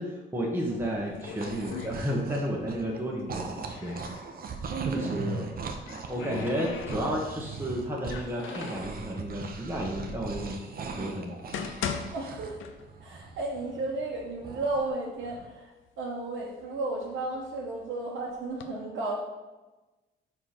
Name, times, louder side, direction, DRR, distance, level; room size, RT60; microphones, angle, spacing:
voice 1, 0.0-4.0 4.9-5.4 6.1-10.6 10.9-11.3, equal, 10° right, -3 dB, 1.2 m, -32 dB
sound 1, 0.7-2.6 2.9-4.3 5.4-7.4 8.0-8.9 9.7-9.8 10.5-10.6 11.2-13.2 13.5-13.6 14.3-14.4 14.8-15.4 16.0-17.7 18.3-18.6, left 7 dB, 80° left, 0.6 m, -39 dB
sound 2, 1.0-3.0 3.3-12.5 12.8-14.9 15.2-15.5, right 4 dB, 50° right, 0.8 m, -39 dB
voice 2, 4.7-5.1 12.1-12.6 13.0-19.1, right 2 dB, 75° right, -4 dB, 1.3 m, -33 dB
4.9 x 4.5 x 5.7 m, 1.1 s
cardioid pair, 90°, 20 cm